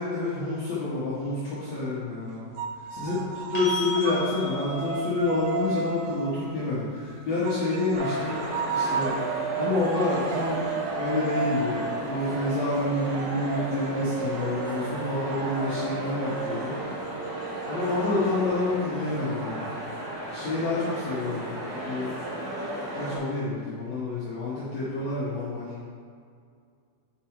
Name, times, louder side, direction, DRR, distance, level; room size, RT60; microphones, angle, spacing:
voice 1, 0.0-9.2 9.5-16.8 17.7-19.6 20.3-21.5 21.8-22.1 22.9-25.7, left 2 dB, 80° left, -9 dB, 1.5 m, -28 dB
sound 1, 2.6-6.9 7.5-18.8, right 5 dB, 85° right, 2.7 m, -34 dB
sound 2, 3.5-11.4 14.2-14.3, left 4 dB, 60° left, 1.5 m, -41 dB
sound 3, 7.9-23.2, right 1 dB, 70° right, 1.4 m, -35 dB
7.6 x 4.7 x 4.4 m, 2.2 s
omnidirectional pair, 4.9 m